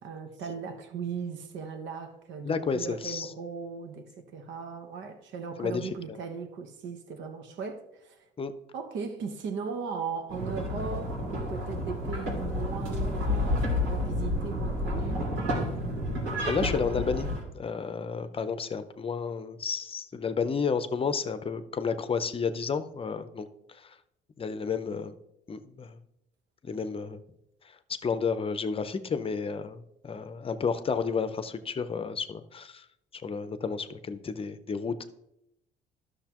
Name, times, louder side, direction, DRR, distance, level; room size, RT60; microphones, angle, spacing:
voice 1, 0.0-8.3 8.7-15.3, right 5 dB, 70° right, 1.2 m, -38 dB
voice 2, 2.4-3.3 5.6-6.2 8.4-8.5 16.4-24.0 24.4-25.2 25.5-26.0 26.6-27.2 28.0-32.8 33.1-35.0, left 5 dB, 30° left, 0.7 m, -31 dB
sound 1, 10.3-17.4, left 1 dB, 85° right, 2.9 m, -30 dB
11.5 x 6.5 x 3.0 m
cardioid pair, 95°, 20 cm